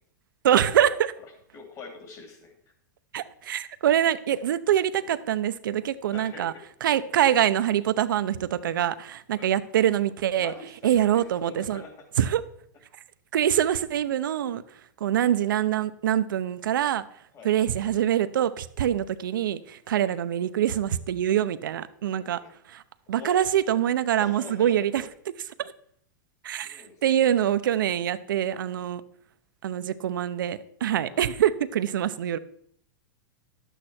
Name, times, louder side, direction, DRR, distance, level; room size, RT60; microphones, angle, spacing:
voice 1, 0.4-1.1 3.1-6.5 6.8-10.5 10.8-11.8 12.2-12.4 13.3-14.6 15.0-17.0 17.4-22.4 22.7-22.8 23.1-25.0 25.6-25.7 26.4-29.0 29.6-32.4, right 10 dB, 90° right, 14 dB, 0.7 m, -24 dB
voice 2, 1.5-2.7 6.1-6.5 9.3-9.5 10.4-11.9 17.3-17.5 18.9-19.0 20.0-20.2 22.1-22.5 23.1-23.4 24.2-24.7 26.6-27.4 31.1-31.2, left 4 dB, 30° left, 3 dB, 2.7 m, -44 dB
12.0 x 8.2 x 4.3 m, 0.67 s
supercardioid pair, 140°, 11 cm